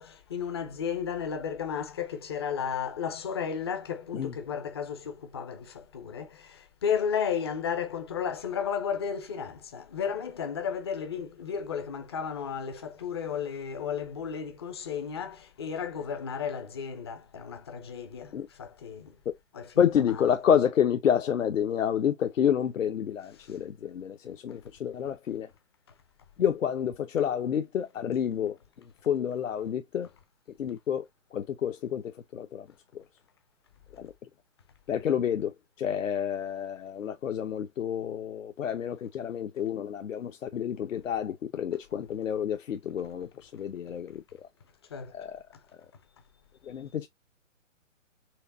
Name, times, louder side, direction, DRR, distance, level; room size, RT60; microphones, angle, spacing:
voice 1, 0.0-19.2 19.5-20.2 23.4-23.6 44.9-45.2, left 7 dB, 20° left, 0.5 m, -33 dB
voice 2, 19.8-25.5 26.4-28.6 29.1-30.1 30.6-31.0 31.3-32.7 33.9-34.1 34.9-44.2 45.1-45.4 46.7-47.1, left 8 dB, 75° left, 0.8 m, -29 dB
4.7 x 3.2 x 2.5 m
hypercardioid pair, 145°, 39 cm